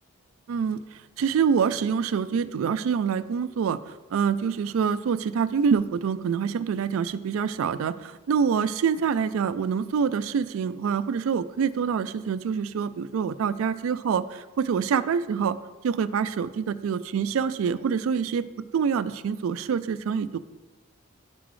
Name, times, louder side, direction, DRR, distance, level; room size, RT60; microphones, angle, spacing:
voice 1, 0.5-15.6 15.8-18.5 18.7-20.4, right 6 dB, 75° right, 14 dB, 0.3 m, -26 dB
10.5 x 6.0 x 3.1 m, 1.2 s
head